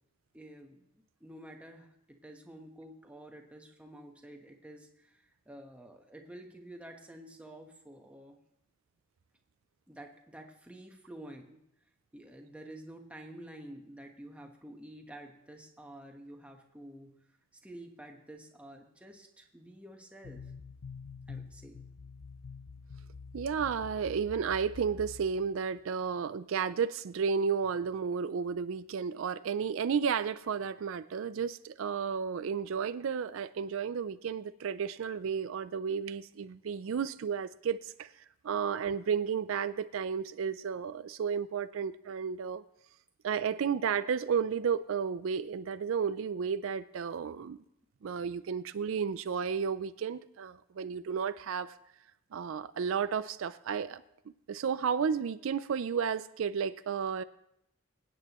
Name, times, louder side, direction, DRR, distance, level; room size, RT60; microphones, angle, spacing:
voice 1, 0.3-0.9 1.2-8.4 9.9-11.6 12.1-17.1 17.6-20.5 21.3-21.8, right 1 dB, 5° right, 2 dB, 1.1 m, -50 dB
sound 1, 20.2-25.8, left 5 dB, 90° left, 0.5 m, -47 dB
voice 2, 23.3-38.1 38.4-42.6 43.2-47.6 48.0-51.8 52.3-54.0 54.5-57.2, right 6 dB, 70° right, 13 dB, 0.4 m, -32 dB
25.5 x 8.7 x 3.0 m, 0.79 s
head